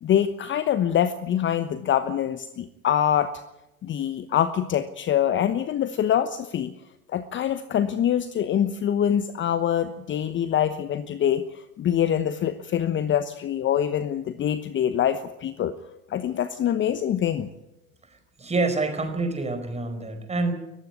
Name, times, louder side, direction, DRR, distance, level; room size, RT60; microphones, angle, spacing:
voice 1, 0.0-3.3 3.8-6.7 7.1-15.7 16.1-17.5, left 10 dB, 25° left, 12 dB, 1.1 m, -24 dB
voice 2, 18.0-20.5, right 3 dB, 15° right, 7 dB, 4.8 m, -27 dB
20.5 x 15.0 x 9.7 m, 0.91 s
figure-of-eight pair, 85°, 43 cm